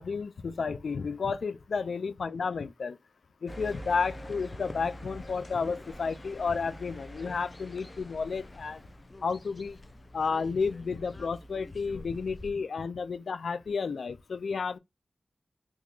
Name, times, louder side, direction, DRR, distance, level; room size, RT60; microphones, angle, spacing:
voice 1, 0.0-3.0 3.4-8.9 9.2-9.8 10.1-14.8, left 5 dB, 90° left, 0.4 m, -32 dB
sound 1, 3.5-12.5, left 1 dB, 30° left, 0.5 m, -46 dB
3.6 x 3.0 x 2.4 m
wide cardioid pair, 100°, 0 cm